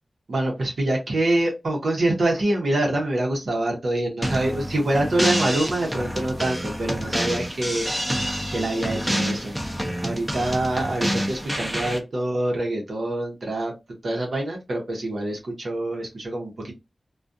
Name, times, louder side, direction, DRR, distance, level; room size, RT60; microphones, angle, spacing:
voice 1, 0.3-7.9 8.5-9.6 10.0-13.7 14.0-16.7, right 1 dB, 75° right, 0 dB, 1.0 m, -25 dB
sound 1, 4.2-12.0, equal, 10° right, 0.7 m, -28 dB
2.4 x 2.3 x 2.6 m, 0.23 s
wide cardioid pair, 90°, 0 cm